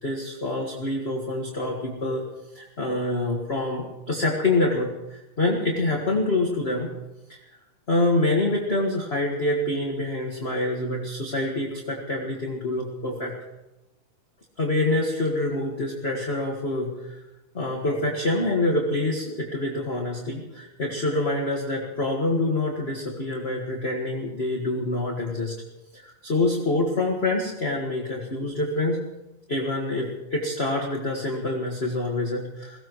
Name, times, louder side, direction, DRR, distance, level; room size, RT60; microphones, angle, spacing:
voice 1, 0.0-2.2 2.5-6.9 7.9-13.3 14.6-17.2 17.5-25.5 25.9-29.0 29.5-32.8, left 2 dB, 30° left, -1 dB, 1.2 m, -26 dB
22.0 x 17.5 x 3.1 m, 1.0 s
omnidirectional pair, 3.6 m